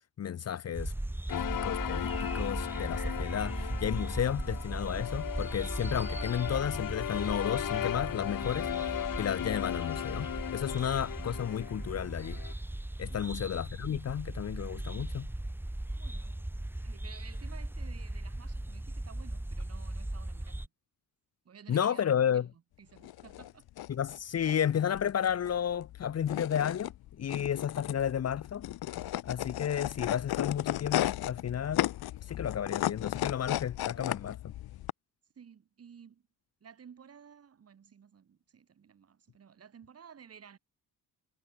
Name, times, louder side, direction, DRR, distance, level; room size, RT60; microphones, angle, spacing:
voice 1, 0.2-0.9 1.3-12.4 13.0-15.3 21.7-22.5 23.9-28.7 29.2-31.9 32.3-34.4, left 9 dB, 45° left, 1.1 m, -32 dB
sound 1, 0.7-20.7, right 1 dB, 5° right, 2.3 m, -38 dB
sound 2, 1.3-12.5, left 11 dB, 65° left, 3.1 m, -37 dB
voice 2, 13.1-13.4 16.0-16.4 16.8-20.7 21.4-22.5 22.8-23.7 33.9-34.2 35.3-36.2 36.6-40.6, right 7 dB, 40° right, 5.0 m, -54 dB
sound 3, 23.0-34.9, left 14 dB, 85° left, 1.2 m, -35 dB
cardioid pair, 155°, 36 cm